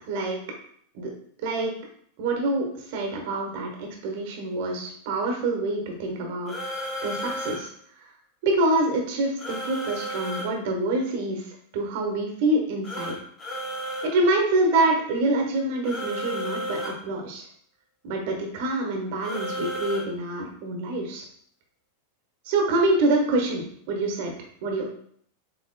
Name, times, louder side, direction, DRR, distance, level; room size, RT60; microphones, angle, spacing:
voice 1, 0.1-0.4 0.9-1.1 1.4-1.7 2.2-6.6 7.0-7.7 8.4-11.4 11.7-13.1 14.0-17.4 18.0-21.2 22.4-24.3 24.6-24.8, right 2 dB, 50° right, 1 dB, 1.0 m, -26 dB
sound 1, 6.5-7.6 9.4-10.5 12.8-14.1 15.8-17.0 19.2-20.0, equal, 20° left, 1.3 m, -32 dB
6.7 x 2.9 x 2.2 m, 0.63 s
figure-of-eight pair, 90°, 0 cm